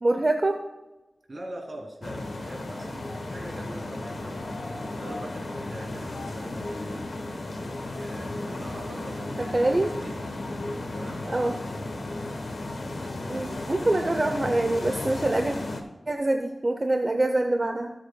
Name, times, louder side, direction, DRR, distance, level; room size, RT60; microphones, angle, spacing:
voice 1, 0.0-0.6 9.5-9.9 11.2-11.6 13.3-15.5 16.1-17.9, right 2 dB, 40° right, 5 dB, 0.7 m, -25 dB
voice 2, 1.3-4.5 4.9-7.1 8.0-10.2 10.9-11.6, right 1 dB, 55° right, 0 dB, 2.6 m, -42 dB
sound 1, 2.0-15.8, left 2 dB, 75° left, 1.2 m, -34 dB
18.0 x 7.5 x 2.3 m, 1.0 s
wide cardioid pair, 70°, 0 cm